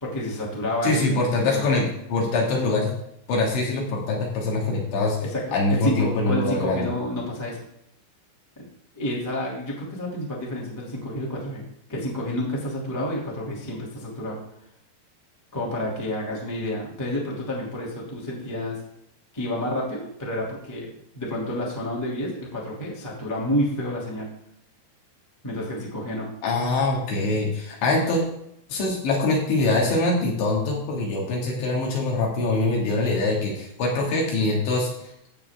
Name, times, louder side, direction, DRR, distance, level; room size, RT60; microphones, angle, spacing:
voice 1, 0.0-1.6 5.2-7.6 8.5-8.6 8.9-11.6 11.9-14.4 15.5-18.8 19.3-24.3 25.4-26.3, left 1 dB, 10° left, -4 dB, 0.8 m, -29 dB
voice 2, 0.8-2.9 3.3-5.2 5.5-6.9 26.4-28.2 28.7-34.9, left 2 dB, 65° left, -2 dB, 4.5 m, -23 dB
15.5 x 7.7 x 3.7 m, 0.77 s
omnidirectional pair, 5.7 m